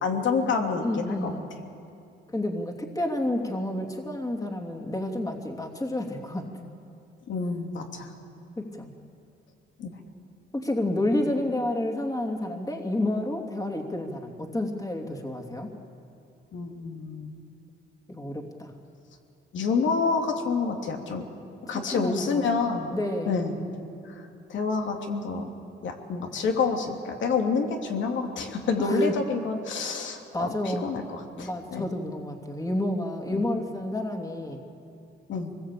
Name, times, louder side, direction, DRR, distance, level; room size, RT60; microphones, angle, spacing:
voice 1, 0.0-1.3 7.3-8.1 9.8-9.9 16.5-17.3 19.5-21.2 21.7-22.9 23.3-23.6 24.5-25.5 25.8-31.9 33.3-33.4 35.3-35.5, left 4 dB, 70° left, 3 dB, 3.1 m, -28 dB
voice 2, 0.8-1.5 2.3-6.4 8.6-8.9 10.5-15.7 18.1-18.7 21.7-22.4 22.9-23.3 28.8-29.1 30.3-30.9 31.3-34.6, left 1 dB, 15° left, 2 dB, 2.8 m, -30 dB
25.5 x 20.5 x 8.5 m, 2.5 s
cardioid pair, 90°, 20 cm